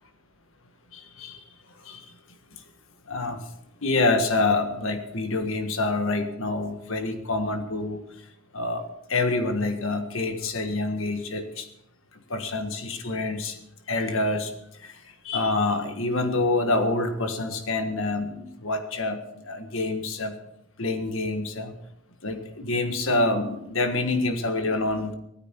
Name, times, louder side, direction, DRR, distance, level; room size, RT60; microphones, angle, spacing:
voice 1, 0.9-1.4 1.8-2.0 3.1-3.4 3.8-8.0 8.5-8.8 9.1-11.7 12.3-13.6 13.9-14.5 14.8-14.9 15.2-20.3 20.8-21.7 22.2-25.1, left 2 dB, 65° left, 7 dB, 1.6 m, -26 dB
16.0 x 13.5 x 4.6 m, 0.80 s
head